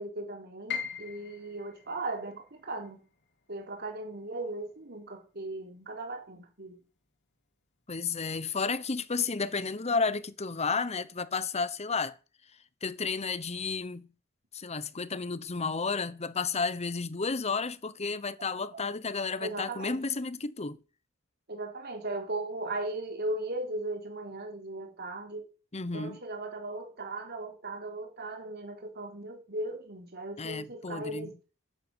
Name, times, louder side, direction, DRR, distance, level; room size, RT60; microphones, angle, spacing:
voice 1, 0.0-3.0 3.5-6.8 18.4-18.8 19.4-20.0 21.5-25.5 25.9-31.3, right 2 dB, 50° right, 4.0 m, -37 dB
Piano, 0.7-6.6 7.0-8.1 8.5-8.6 9.3-9.7, left 7 dB, 60° left, 3.9 m, -44 dB
voice 2, 7.9-12.2 12.8-14.1 14.5-20.8 25.7-26.2 30.4-31.3, left 4 dB, 30° left, 1.0 m, -32 dB
13.0 x 9.9 x 8.0 m
head